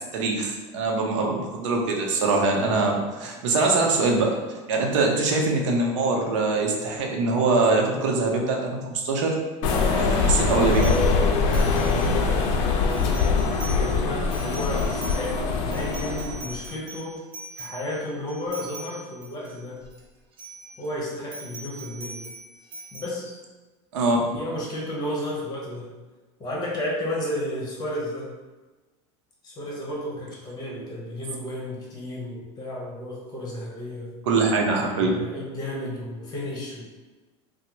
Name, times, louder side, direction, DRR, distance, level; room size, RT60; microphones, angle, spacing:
voice 1, 0.1-4.3 4.7-9.3 10.0-11.0 23.9-24.2 34.3-35.1, right 3 dB, 85° right, 0 dB, 0.6 m, -23 dB
sound 1, 9.6-16.6, left 4 dB, 55° left, 0.5 m, -23 dB
sound 2, 10.7-12.5 12.9-13.9 14.2-20.0 20.3-20.9 21.3-23.0, right 2 dB, 35° right, 0.6 m, -41 dB
voice 2, 11.6-12.5 12.9-13.4 13.6-17.2 17.6-19.8 20.8-22.2 22.9-23.3 24.2-25.9 26.4-28.3 29.4-34.1 34.9-36.9, left 1 dB, 25° left, -4 dB, 1.0 m, -33 dB
3.3 x 2.0 x 3.0 m, 1.2 s
supercardioid pair, 125°, 15 cm